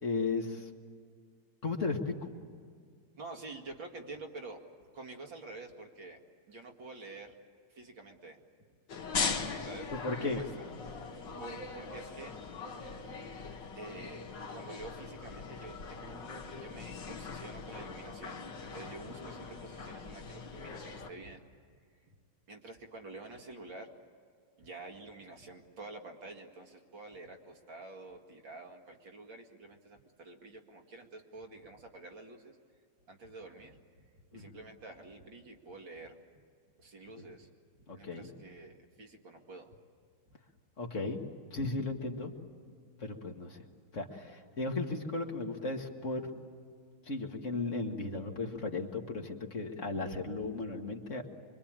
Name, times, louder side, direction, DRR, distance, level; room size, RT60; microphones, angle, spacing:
voice 1, 0.0-0.7 1.6-2.3 9.9-10.4 34.3-34.5 37.2-37.3 37.9-38.3 40.8-42.3 43.0-43.6 43.9-46.3 47.1-51.3, left 3 dB, 35° left, 3 dB, 1.9 m, -35 dB
voice 2, 3.2-4.6 4.9-6.2 6.5-7.4 7.7-8.4 9.6-9.9 10.2-10.7 11.0-11.1 11.4-12.4 13.8-14.3 14.5-16.2 16.5-21.4 22.0-22.2 22.5-23.9 24.6-32.5 33.1-36.2 36.8-37.5 37.9-39.8, right 2 dB, 65° right, 3 dB, 2.8 m, -48 dB
sound 1, 8.9-21.1, left 4 dB, 60° left, 2.3 m, -40 dB
25.5 x 23.5 x 8.9 m, 2.1 s
omnidirectional pair, 2.3 m